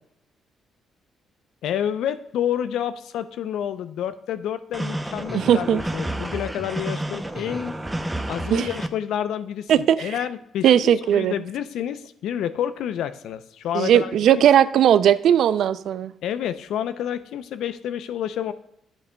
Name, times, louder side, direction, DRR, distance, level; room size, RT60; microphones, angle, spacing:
voice 1, 1.6-7.7 8.3-10.8 11.1-14.4 16.2-18.5, left 10 dB, 80° left, 12 dB, 0.5 m, -29 dB
sound 1, 4.7-8.9, right 1 dB, 10° right, 0.6 m, -30 dB
voice 2, 5.3-5.8 8.5-8.7 9.7-10.2 10.6-11.3 13.7-16.1, right 10 dB, 75° right, 15 dB, 0.4 m, -18 dB
11.0 x 8.0 x 2.2 m, 0.81 s
cardioid pair, 90°, 0 cm